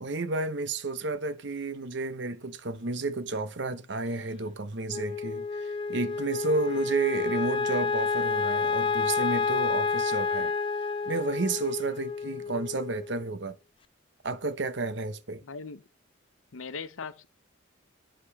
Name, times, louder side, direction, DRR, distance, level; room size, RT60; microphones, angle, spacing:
voice 1, 0.0-10.5 11.1-13.6 14.2-15.4, right 3 dB, 60° right, 0.8 m, -31 dB
Wind instrument woodwind instrument, 4.9-13.3, left 4 dB, 25° left, 0.4 m, -29 dB
voice 2, 15.4-15.9 16.5-17.3, left 5 dB, 85° left, 0.7 m, -39 dB
10.0 x 5.2 x 5.7 m
head